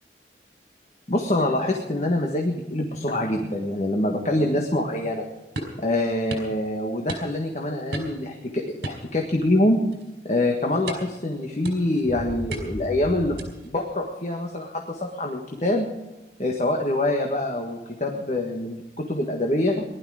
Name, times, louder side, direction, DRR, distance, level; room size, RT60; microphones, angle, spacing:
voice 1, 1.1-5.3 5.8-9.8 10.2-15.9 16.4-19.8, left 1 dB, 40° left, 2 dB, 1.6 m, -25 dB
sound 1, 5.6-5.8 6.3-6.5 7.1-7.5 7.9-8.3 8.8-9.6 9.9-10.2 10.9-11.2 11.6-12.0 12.5-12.9 13.4-13.7, right 2 dB, 65° right, 4.0 m, -35 dB
sound 2, 11.6-13.5, equal, 15° left, 4.7 m, -36 dB
19.0 x 12.0 x 4.9 m, 1.0 s
head